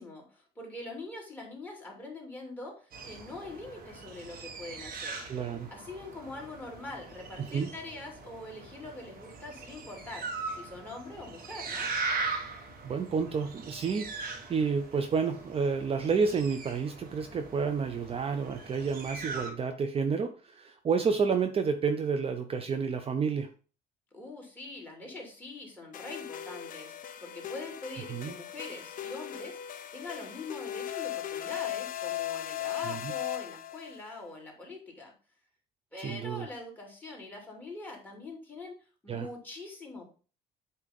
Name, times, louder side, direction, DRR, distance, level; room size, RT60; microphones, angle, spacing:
voice 1, 0.0-5.2 5.7-11.9 24.1-35.1 35.9-38.8 39.0-40.1, left 2 dB, 10° left, -1 dB, 2.7 m, -43 dB
sound 1, 2.9-19.5, right 3 dB, 60° right, 1.5 m, -40 dB
voice 2, 5.3-5.7 7.5-7.7 12.8-23.5 28.1-28.3 32.9-33.1 36.0-36.5 39.1-39.3, right 5 dB, 35° right, 6 dB, 0.6 m, -30 dB
sound 2, 25.9-34.0, left 11 dB, 50° left, 0.6 m, -38 dB
8.3 x 2.9 x 5.2 m, 0.38 s
cardioid pair, 110°, 17 cm